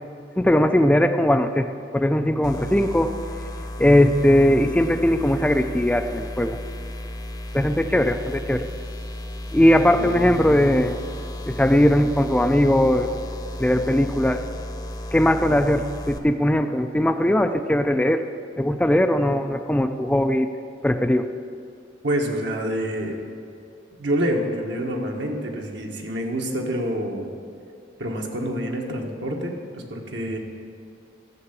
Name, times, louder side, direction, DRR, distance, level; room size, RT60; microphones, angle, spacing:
voice 1, 0.4-1.7 1.9-3.1 3.8-6.6 7.5-8.7 9.5-11.0 11.5-13.1 13.6-14.4 15.1-18.2 18.6-20.5 20.8-21.3, left 1 dB, 5° left, 7 dB, 0.4 m, -19 dB
sound 1, 2.4-16.2, left 1 dB, 20° left, 0.8 m, -34 dB
voice 2, 22.0-23.2 24.0-27.3 28.0-30.4, equal, 65° right, 1 dB, 1.5 m, -27 dB
13.0 x 6.9 x 8.3 m, 2.5 s
head